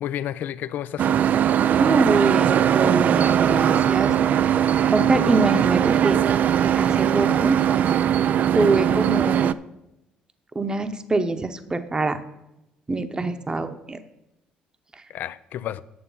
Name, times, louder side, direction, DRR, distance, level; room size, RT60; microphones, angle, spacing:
voice 1, 0.0-1.2 15.1-15.8, left 11 dB, 65° left, 0.5 m, -31 dB
sound 1, 1.0-9.5, right 9 dB, 55° right, 0.3 m, -20 dB
voice 2, 1.8-4.1 4.4-4.5 4.9-6.2 6.8-7.6 8.5-9.5 10.5-12.2 12.9-14.0, right 2 dB, 25° right, 0.9 m, -24 dB
9.6 x 6.8 x 5.6 m
supercardioid pair, 75°, 3 cm